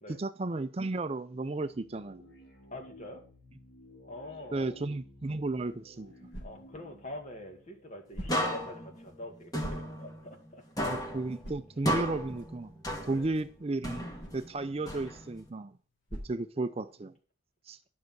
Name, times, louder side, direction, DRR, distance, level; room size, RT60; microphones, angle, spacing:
voice 1, 0.2-2.3 4.5-6.3 10.9-12.7 13.1-15.7 16.1-17.1 17.7-17.8, right 2 dB, 30° right, 0.5 m, -34 dB
sound 1, 1.5-8.6, equal, 60° left, 3.7 m, -55 dB
voice 2, 2.7-3.2 4.1-4.8 6.4-11.1 13.0-13.3, left 1 dB, 35° left, 2.1 m, -45 dB
sound 2, 5.5-17.2, right 1 dB, 80° left, 3.9 m, -49 dB
sound 3, 8.3-10.5 10.8-13.4 13.8-15.5, equal, 20° left, 1.7 m, -35 dB
12.0 x 6.4 x 6.1 m
head